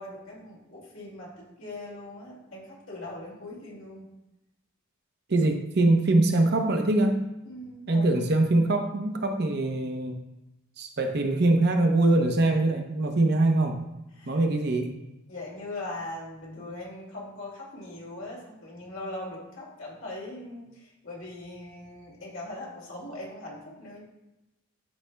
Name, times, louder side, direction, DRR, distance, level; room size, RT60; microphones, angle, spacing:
voice 1, 0.0-4.1 7.4-8.0 14.2-14.4 15.3-24.0, left 2 dB, 65° left, -4 dB, 2.4 m, -40 dB
voice 2, 5.3-7.2 7.9-10.2 10.8-13.8 14.3-14.9, right 2 dB, 55° right, 4 dB, 0.7 m, -23 dB
12.0 x 4.1 x 2.2 m, 0.96 s
head